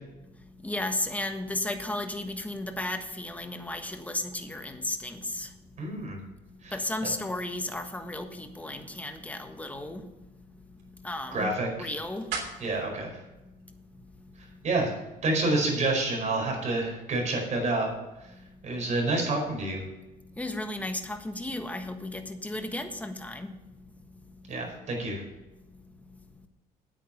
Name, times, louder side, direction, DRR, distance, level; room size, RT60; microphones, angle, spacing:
voice 1, 0.6-5.5 6.7-10.1 11.0-12.3 20.4-23.5, left 1 dB, 10° left, 6 dB, 1.4 m, -34 dB
voice 2, 5.8-6.2 6.6-6.7 11.3-11.9 12.6-13.1 14.6-14.9 15.2-17.9 18.6-19.8 24.5-25.2, right 2 dB, 45° right, 0 dB, 4.9 m, -28 dB
sound 1, 9.3-14.5, right 5 dB, 85° right, 3.2 m, -44 dB
9.2 x 9.0 x 6.7 m, 1.0 s
cardioid pair, 110°, 17 cm